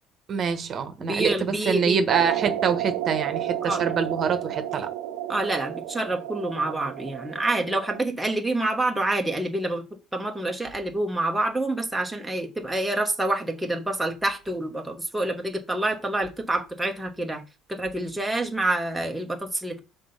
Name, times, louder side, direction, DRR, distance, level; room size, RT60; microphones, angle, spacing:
voice 1, 0.3-4.9, right 6 dB, 40° right, 1.1 m, -25 dB
voice 2, 1.0-2.0 3.6-3.9 5.3-9.8 10.1-17.4 17.7-19.8, right 2 dB, 5° right, 1.1 m, -27 dB
sound 1, 2.1-8.0, right 12 dB, 90° right, 0.6 m, -31 dB
6.1 x 3.9 x 5.6 m
cardioid pair, 130°, 0 cm